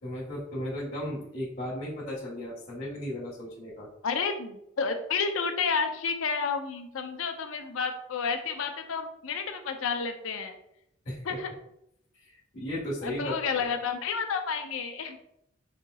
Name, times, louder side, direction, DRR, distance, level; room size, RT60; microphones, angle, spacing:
voice 1, 0.0-3.9 11.0-11.4 12.3-13.6, left 1 dB, 40° left, -6 dB, 1.1 m, -35 dB
voice 2, 4.0-10.6 11.2-11.5 13.0-15.2, left 5 dB, 75° left, 7 dB, 0.5 m, -31 dB
4.9 x 2.8 x 2.3 m, 0.75 s
head